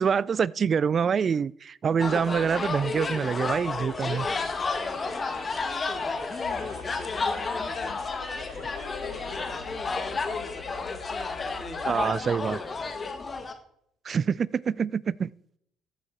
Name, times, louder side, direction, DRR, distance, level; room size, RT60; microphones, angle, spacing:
voice 1, 0.0-4.2 11.9-12.6 14.0-15.3, right 6 dB, 45° right, 0.4 m, -26 dB
sound 1, 2.0-13.5, left 4 dB, 35° left, 1.5 m, -31 dB
voice 2, 2.7-3.6 4.0-8.0 8.3-10.9 11.4-13.4, left 1 dB, 5° left, 2.9 m, -45 dB
sound 2, 4.0-9.6, right 4 dB, 85° right, 4.0 m, -49 dB
sound 3, 6.4-12.0, left 7 dB, 90° left, 1.2 m, -44 dB
14.5 x 8.2 x 4.4 m
hypercardioid pair, 60°, 0 cm